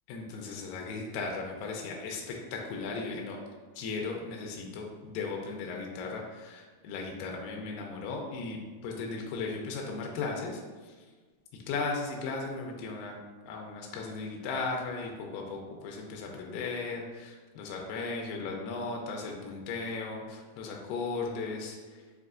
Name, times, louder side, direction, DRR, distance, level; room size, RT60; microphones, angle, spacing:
voice 1, 0.1-3.4 3.8-10.6 10.9-11.0 11.7-13.2 13.5-21.8, left 4 dB, 85° left, 0 dB, 2.0 m, -36 dB
5.7 x 2.6 x 2.4 m, 1.4 s
omnidirectional pair, 4.4 m